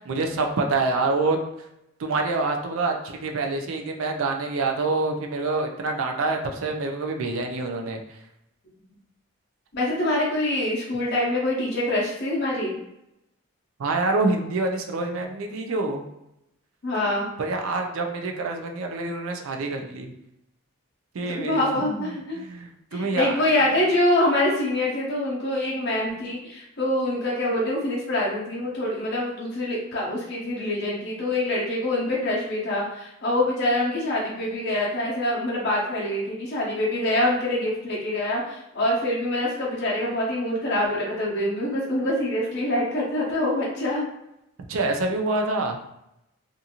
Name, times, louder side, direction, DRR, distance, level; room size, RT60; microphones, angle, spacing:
voice 1, 0.1-1.4 2.0-8.0 13.8-16.1 17.4-20.1 21.1-23.4 44.7-45.8, right 3 dB, 70° right, 3 dB, 0.4 m, -26 dB
voice 2, 9.7-12.8 16.8-17.3 21.4-22.4 22.9-44.0, left 1 dB, 50° left, -5 dB, 0.6 m, -25 dB
2.5 x 2.4 x 2.8 m, 0.85 s
head